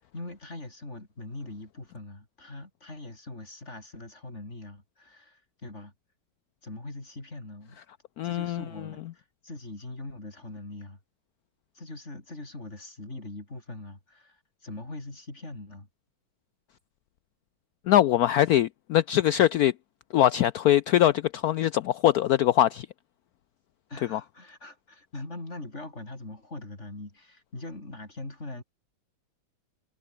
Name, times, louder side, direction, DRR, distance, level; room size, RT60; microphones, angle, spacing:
voice 1, 0.0-5.9 6.6-7.8 8.2-11.0 11.7-15.9 23.9-28.6, left 2 dB, 35° left, 5.3 m, -42 dB
voice 2, 8.2-8.6 17.9-19.7 20.1-22.9 24.1-24.2, left 12 dB, 90° left, 0.8 m, -22 dB
omnidirectional pair, 2.2 m